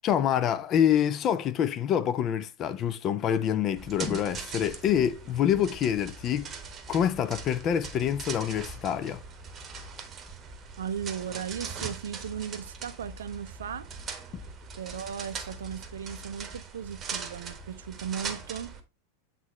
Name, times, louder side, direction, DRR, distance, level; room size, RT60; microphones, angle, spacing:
voice 1, 0.0-6.5 6.9-9.2, left 9 dB, 30° left, 0.6 m, -26 dB
sound 1, 3.8-18.8, right 4 dB, 25° right, 1.1 m, -41 dB
voice 2, 10.8-13.9 14.2-14.3 14.8-18.8, right 8 dB, 65° right, 0.5 m, -37 dB
8.4 x 4.1 x 3.0 m
figure-of-eight pair, 90°, 0 cm